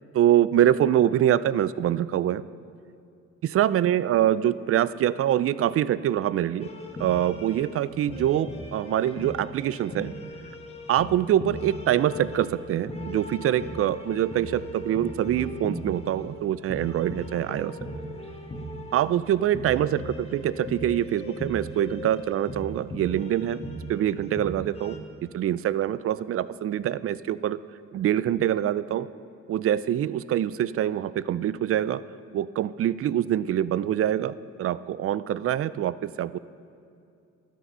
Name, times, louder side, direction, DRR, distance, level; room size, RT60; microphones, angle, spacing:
voice 1, 0.1-2.4 3.5-6.7 7.0-10.1 10.9-17.7 18.9-27.6 27.9-29.1 29.5-32.0 32.3-36.4, right 11 dB, 50° right, 17 dB, 0.4 m, -25 dB
sound 1, 6.6-25.0, equal, 20° left, 1.4 m, -38 dB
12.5 x 10.0 x 5.5 m, 2.5 s
cardioid pair, 90°, 30 cm